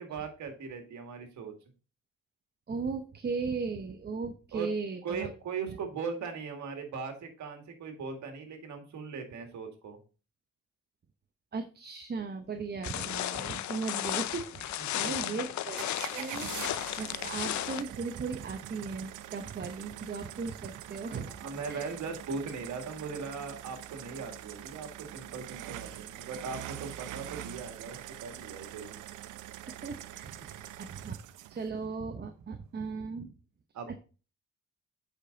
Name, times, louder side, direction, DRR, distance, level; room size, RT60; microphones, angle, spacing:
voice 1, 0.0-1.5 4.5-4.7 5.0-10.0 15.0-15.3 21.3-29.0 33.7-34.0, right 5 dB, 70° right, 5 dB, 2.1 m, -39 dB
voice 2, 2.7-5.3 5.6-5.8 11.5-15.9 16.1-21.3 21.7-21.9 29.7-31.2 31.5-33.4 33.9-34.0, right 4 dB, 35° right, 6 dB, 0.9 m, -37 dB
sound 1, 12.8-17.8, left 13 dB, 70° left, 0.6 m, -34 dB
sound 2, 15.8-31.7, right 13 dB, 85° right, 0.6 m, -44 dB
8.2 x 5.2 x 3.9 m, 0.35 s
cardioid pair, 90°, 30 cm